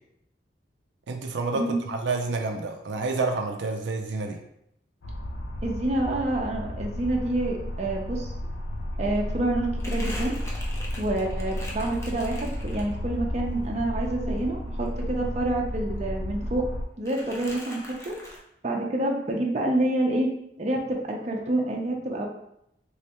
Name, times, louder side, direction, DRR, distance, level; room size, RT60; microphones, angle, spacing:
voice 1, 1.1-4.4, right 3 dB, 90° right, 3 dB, 0.5 m, -29 dB
sound 1, 5.0-16.9, equal, 80° left, 0.5 m, -32 dB
voice 2, 5.6-8.3 9.0-10.3 11.0-16.7 17.0-18.4 18.6-20.3 20.6-22.3, right 1 dB, 40° right, 0 dB, 0.6 m, -28 dB
Crumpling crinkling, 8.7-13.2 13.6-15.7 16.0-16.7 17.0-18.4, left 1 dB, 15° left, 0.6 m, -43 dB
3.3 x 3.1 x 2.9 m, 0.77 s
head